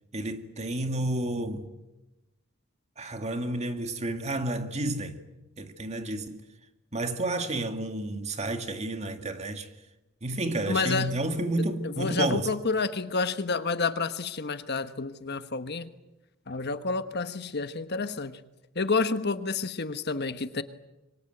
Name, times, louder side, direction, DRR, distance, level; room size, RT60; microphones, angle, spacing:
voice 1, 0.1-1.7 3.0-5.2 5.6-6.4 6.9-9.7 10.2-12.5, right 2 dB, 35° right, 2.1 m, -31 dB
voice 2, 10.7-11.1 11.8-15.9 16.5-18.4 18.7-20.6, left 4 dB, 55° left, 1.2 m, -29 dB
27.0 x 24.0 x 8.0 m
head